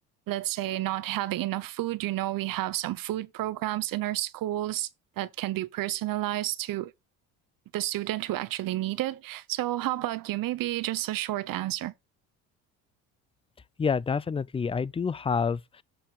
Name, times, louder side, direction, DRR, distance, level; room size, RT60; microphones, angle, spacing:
voice 1, 0.3-4.9 5.2-6.9 7.7-11.9, right 15 dB, 60° right, 1.0 m, -30 dB
voice 2, 13.8-15.8, left 5 dB, 15° left, 0.4 m, -28 dB
7.7 x 4.3 x 5.1 m
supercardioid pair, 85°, 38 cm